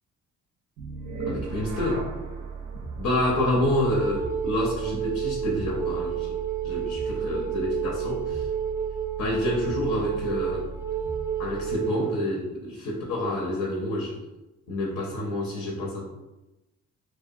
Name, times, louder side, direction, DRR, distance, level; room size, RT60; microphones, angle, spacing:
sound 1, 0.8-11.9, right 5 dB, 75° right, 0.5 m, -37 dB
voice 1, 1.3-2.1 3.0-6.3 6.6-8.5 9.2-10.7 11.4-14.2 14.7-16.1, left 1 dB, 70° left, -2 dB, 0.7 m, -28 dB
Wind instrument woodwind instrument, 3.8-12.2, right 8 dB, 5° right, 0.4 m, -31 dB
2.7 x 2.2 x 2.5 m, 1.0 s
cardioid pair, 90°, 30 cm